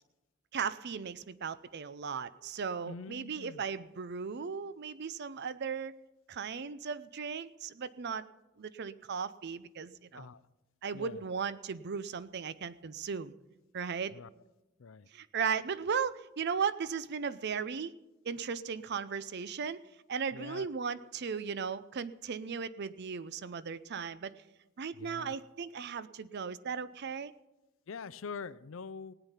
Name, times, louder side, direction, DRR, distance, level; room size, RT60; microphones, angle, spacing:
voice 1, 0.5-5.9 6.3-8.3 8.6-10.3 10.8-13.3 13.7-14.2 15.1-17.9 18.2-19.8 20.1-24.3 24.8-27.3, right 6 dB, 55° right, 16 dB, 0.5 m, -36 dB
voice 2, 2.8-3.6 10.1-10.4 10.9-11.2 14.1-14.3 14.8-15.1 20.3-20.7 25.0-25.4 27.9-29.1, left 5 dB, 70° left, 17 dB, 0.5 m, -44 dB
18.0 x 9.0 x 5.7 m, 1.0 s
head